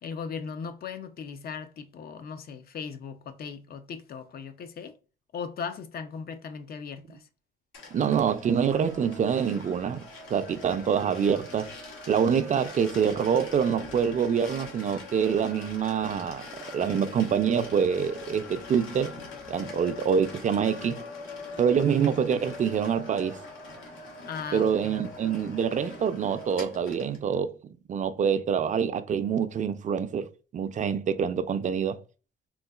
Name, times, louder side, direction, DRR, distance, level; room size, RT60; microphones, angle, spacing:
voice 1, 0.0-5.0 5.3-7.3 24.3-25.0, left 6 dB, 50° left, 0.5 m, -38 dB
sound 1, 7.7-27.2, left 3 dB, 80° left, 1.1 m, -43 dB
voice 2, 7.9-10.0 10.3-11.7 12.1-19.2 19.5-21.0 21.6-23.4 24.5-27.5 27.9-32.0, right 7 dB, 40° right, 0.4 m, -26 dB
3.8 x 2.3 x 2.3 m
cardioid pair, 90°, 20 cm